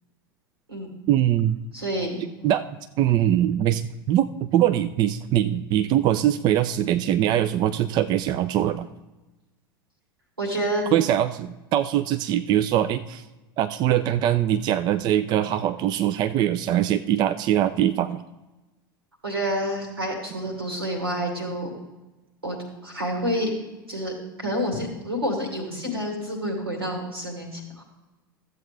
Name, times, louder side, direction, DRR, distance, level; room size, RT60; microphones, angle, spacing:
voice 1, 1.1-1.6 2.4-2.6 3.0-8.9 10.9-13.2 13.6-18.2, right 11 dB, 35° right, 11 dB, 0.4 m, -22 dB
voice 2, 1.7-2.5 10.4-10.9 19.2-21.7 22.4-22.6 22.8-23.5 23.9-24.1 24.4-27.8, equal, 90° right, 1 dB, 2.5 m, -28 dB
13.5 x 8.0 x 3.2 m, 1.1 s
figure-of-eight pair, 85°, 12 cm